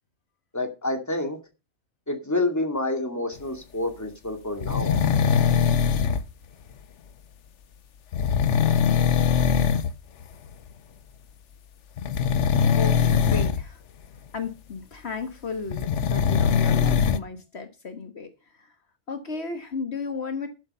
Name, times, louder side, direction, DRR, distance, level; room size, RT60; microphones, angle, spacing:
voice 1, 0.5-1.4 2.1-5.1, left 2 dB, 15° left, 2.4 m, -28 dB
sound 1, 4.6-6.2 8.1-9.9 10.2-10.5 12.0-13.6 15.7-17.2, left 7 dB, 85° left, 1.1 m, -21 dB
voice 2, 12.8-13.8 14.3-18.3 18.6-18.7 19.1-20.5, left 4 dB, 65° left, 1.7 m, -34 dB
12.0 x 8.0 x 5.5 m
omnidirectional pair, 1.2 m